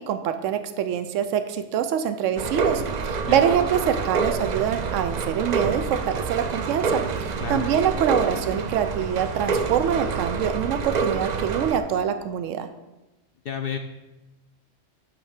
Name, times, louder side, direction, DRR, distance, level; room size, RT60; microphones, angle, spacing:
voice 1, 0.1-12.7, right 8 dB, 90° right, 9 dB, 0.9 m, -25 dB
sound 1, 2.4-11.8, right 5 dB, 55° right, 0.5 m, -27 dB
voice 2, 13.4-13.8, left 8 dB, 60° left, 5 dB, 0.6 m, -30 dB
8.6 x 3.3 x 6.5 m, 1.0 s
omnidirectional pair, 1.3 m